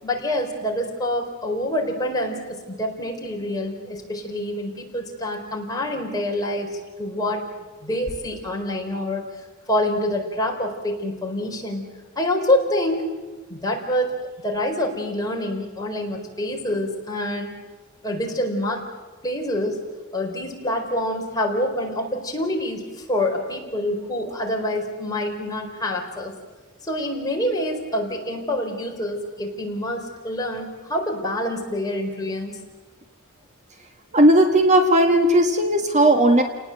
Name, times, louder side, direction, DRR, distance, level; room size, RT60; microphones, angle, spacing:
voice 1, 0.0-7.4 7.8-9.2 9.7-11.8 12.2-13.1 13.5-14.2 14.4-17.5 18.0-18.8 19.2-19.8 20.1-26.3 26.8-32.5, left 1 dB, 20° left, 0 dB, 4.3 m, -26 dB
voice 2, 34.1-36.4, right 1 dB, 35° right, 5 dB, 1.6 m, -16 dB
29.5 x 19.0 x 7.9 m, 1.2 s
head